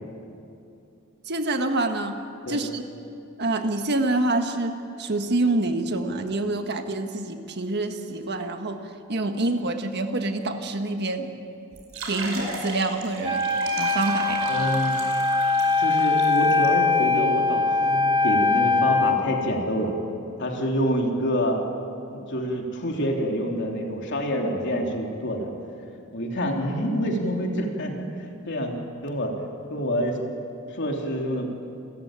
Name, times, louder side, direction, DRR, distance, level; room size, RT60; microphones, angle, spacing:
voice 1, 1.3-2.2 2.5-2.8 3.4-8.8 9.1-11.3 12.0-13.4 13.8-14.5, right 2 dB, 50° right, 6 dB, 1.6 m, -26 dB
sound 1, 11.7-16.7, right 2 dB, 70° right, 5.0 m, -36 dB
Wind instrument woodwind instrument, 13.2-19.2, left 3 dB, 20° right, 2.6 m, -22 dB
voice 2, 14.5-15.0 15.8-20.0 20.4-21.6 22.1-25.5 26.1-27.9 28.5-28.7 29.0-29.3 29.7-30.2 30.8-31.5, equal, 60° left, 1 dB, 3.2 m, -27 dB
29.0 x 14.5 x 8.9 m, 2.6 s
head